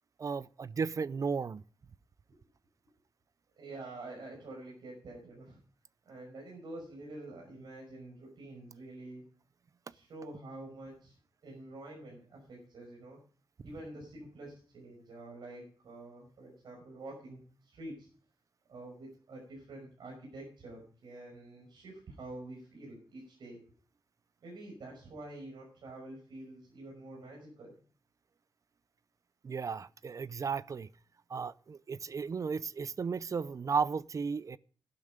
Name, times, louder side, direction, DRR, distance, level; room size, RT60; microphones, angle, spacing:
voice 1, 0.2-1.6 29.4-30.9 31.3-34.6, right 5 dB, 45° right, 0.5 m, -34 dB
voice 2, 3.6-5.6 6.1-9.2 9.9-11.2 11.4-13.2 13.6-18.1 18.7-23.6 24.4-27.8, right 2 dB, 80° right, 5.7 m, -47 dB
12.0 x 11.0 x 5.0 m
wide cardioid pair, 110°, 8 cm